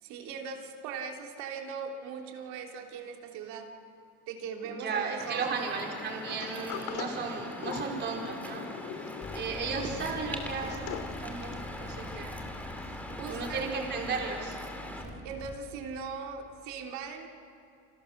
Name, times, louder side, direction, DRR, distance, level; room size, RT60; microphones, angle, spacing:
voice 1, 0.0-3.7 4.3-5.4 13.1-13.7 15.0-17.3, right 6 dB, 65° right, 2 dB, 3.3 m, -40 dB
voice 2, 4.7-8.7 9.3-12.4 13.3-14.6, right 4 dB, 35° right, 0 dB, 4.8 m, -35 dB
Waves surf, 5.2-15.0, left 1 dB, 5° left, 2.4 m, -42 dB
Sliding door, 6.3-11.7, left 8 dB, 65° left, 2.8 m, -42 dB
sound 1, 9.2-16.0, left 2 dB, 20° left, 2.6 m, -45 dB
29.0 x 26.5 x 6.7 m, 2.4 s
cardioid pair, 145°, 30 cm